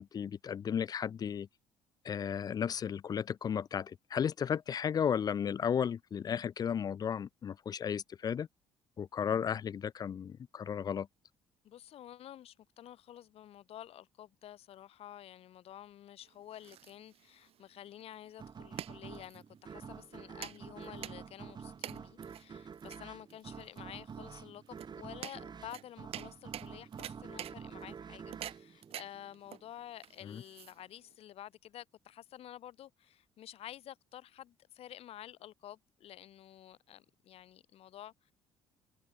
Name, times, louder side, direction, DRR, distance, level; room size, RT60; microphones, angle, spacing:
voice 1, 0.0-1.5 2.1-8.5 9.0-11.1 30.3-30.4, left 8 dB, 35° left, 0.3 m, -34 dB
voice 2, 11.6-38.3, left 12 dB, 65° left, 2.4 m, -50 dB
sound 1, 16.2-31.1, right 12 dB, 65° right, 1.4 m, -48 dB
sound 2, 18.4-29.7, right 6 dB, 40° right, 3.5 m, -48 dB
supercardioid pair, 75°, 11 cm